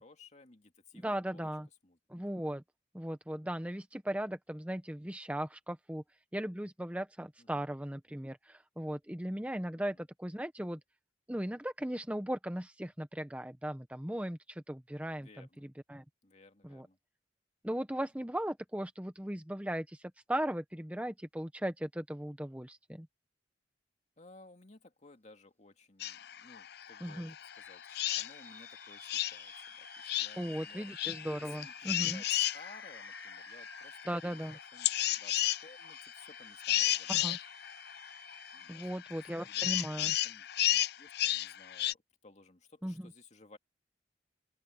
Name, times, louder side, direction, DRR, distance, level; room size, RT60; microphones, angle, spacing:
voice 1, 0.0-1.5 1.8-2.0 7.4-7.7 9.8-10.0 15.2-15.7 16.2-17.0 24.2-30.9 31.4-34.4 34.7-37.4 38.5-43.6, left 3 dB, 40° left, 2.3 m, -58 dB
voice 2, 1.0-1.7 2.1-2.6 2.9-6.0 6.3-10.8 11.3-16.0 16.6-16.9 17.6-23.1 27.0-27.3 30.4-32.2 34.1-34.6 37.1-37.4 38.7-40.1 42.8-43.1, right 1 dB, 5° right, 0.8 m, -37 dB
sound 1, 26.0-41.9, left 14 dB, 60° left, 0.5 m, -35 dB
sound 2, 27.5-39.0, left 2 dB, 10° left, 2.3 m, -53 dB
open air
head